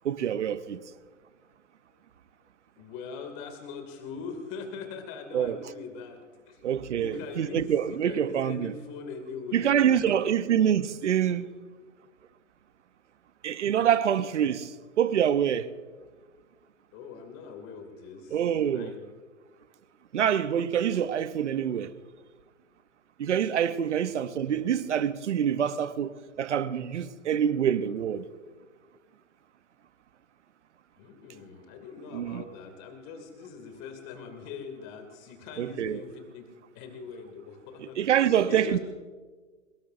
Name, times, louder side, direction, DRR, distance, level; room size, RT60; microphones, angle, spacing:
voice 1, 0.0-0.8 5.3-5.6 6.6-8.7 9.5-11.5 13.4-14.7 15.0-15.7 18.3-18.9 20.1-21.9 23.2-28.2 32.1-32.4 35.6-36.0 38.0-38.8, right 9 dB, 65° right, 1.0 m, -26 dB
voice 2, 2.8-6.6 7.0-10.2 16.9-19.1 23.9-24.1 31.0-36.5 36.7-38.8, left 5 dB, 35° left, 2.6 m, -42 dB
23.5 x 21.5 x 2.6 m
figure-of-eight pair, 110°, 39 cm